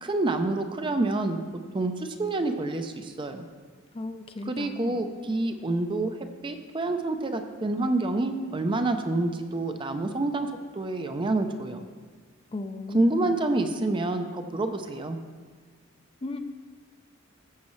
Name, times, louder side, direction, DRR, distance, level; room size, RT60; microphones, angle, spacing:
voice 1, 0.0-1.4 1.7-3.5 4.5-6.2 6.4-10.5 10.8-11.8 12.9-15.2, right 2 dB, 25° right, 7 dB, 0.5 m, -27 dB
voice 2, 3.9-5.0 12.5-13.3 16.2-16.4, left 2 dB, 25° left, 7 dB, 0.5 m, -35 dB
14.0 x 7.4 x 3.2 m, 1.5 s
head